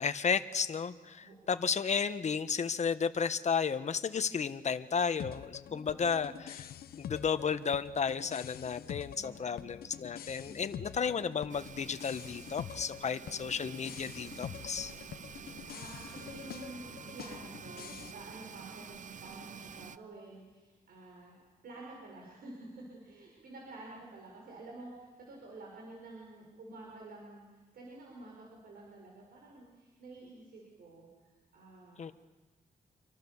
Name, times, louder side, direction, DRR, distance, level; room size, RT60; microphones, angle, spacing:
voice 1, 0.0-6.6 7.0-14.9 32.0-32.1, left 6 dB, 50° left, 11 dB, 1.2 m, -33 dB
voice 2, 1.2-1.9 5.7-6.3 9.1-9.8 10.4-11.0 15.3-16.9 17.1-21.4 21.6-32.1, right 2 dB, 80° right, -2 dB, 6.2 m, -50 dB
sound 1, 5.2-18.1, left 10 dB, 90° left, 0.9 m, -46 dB
sound 2, 11.5-20.0, right 6 dB, 55° right, 0.8 m, -48 dB
27.5 x 24.5 x 7.2 m, 1.2 s
cardioid pair, 95°, 15 cm